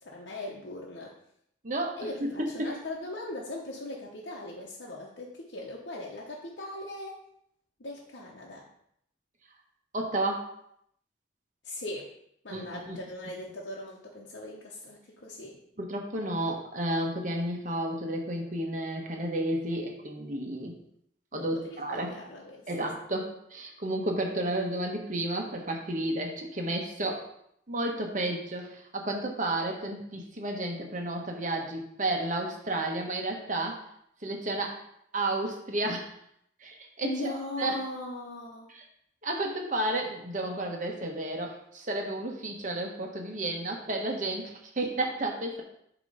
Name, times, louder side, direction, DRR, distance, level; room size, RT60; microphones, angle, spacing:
voice 1, 0.0-1.1 2.0-7.2 7.8-8.7 11.6-12.1 12.4-15.6 21.3-22.7 37.0-38.7, left 1 dB, 65° left, -3 dB, 0.9 m, -39 dB
voice 2, 1.6-2.0 2.6-2.7 9.9-10.5 12.5-13.0 15.8-20.8 21.3-22.1 22.7-27.3 27.7-33.8 34.2-34.8 35.1-36.1 36.6-37.8 38.7-38.8 39.2-45.6, right 1 dB, 40° right, 2 dB, 1.1 m, -32 dB
8.2 x 3.0 x 5.5 m, 0.74 s
head